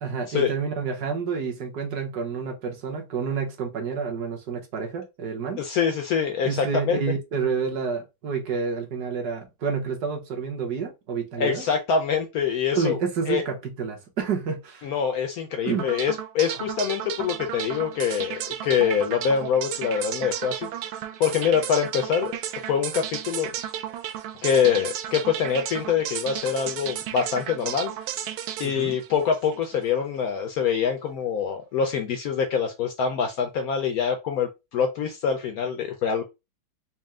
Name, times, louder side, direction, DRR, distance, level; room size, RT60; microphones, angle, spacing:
voice 1, 0.0-5.6 6.4-11.6 12.7-14.9 15.6-15.9 28.6-29.0, right 6 dB, 60° right, 1.3 m, -29 dB
voice 2, 5.6-7.0 11.4-13.0 13.3-13.4 14.8-20.7 21.2-22.3 22.6-23.5 24.4-27.9 28.6-36.2, left 7 dB, 90° left, 0.7 m, -25 dB
sound 1, 15.8-29.9, right 11 dB, 90° right, 1.4 m, -34 dB
4.3 x 2.1 x 3.5 m
omnidirectional pair, 2.2 m